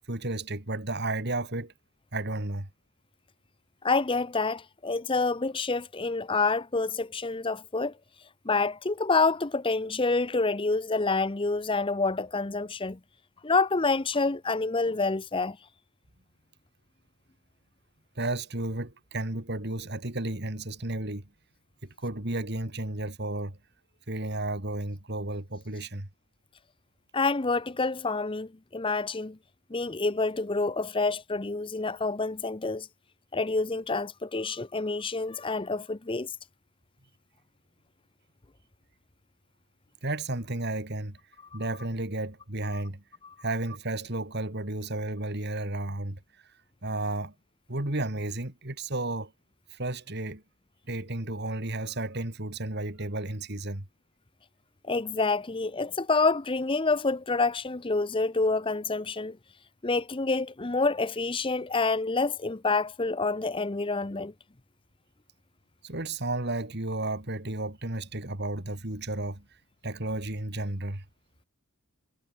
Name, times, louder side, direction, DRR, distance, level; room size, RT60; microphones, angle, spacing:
voice 1, 0.1-1.7 2.1-2.7 18.2-21.3 21.8-23.6 24.1-26.1 40.0-41.2 41.5-43.0 43.4-46.2 46.8-47.3 47.7-49.3 49.7-50.4 50.9-53.9 65.8-69.4 69.8-71.0, right 2 dB, 50° right, 3.0 m, -33 dB
voice 2, 3.8-7.9 8.4-13.0 13.4-15.6 27.1-29.4 29.7-32.9 33.3-36.3 43.2-43.3 54.9-59.4 59.8-64.3, left 3 dB, 25° left, 0.7 m, -27 dB
head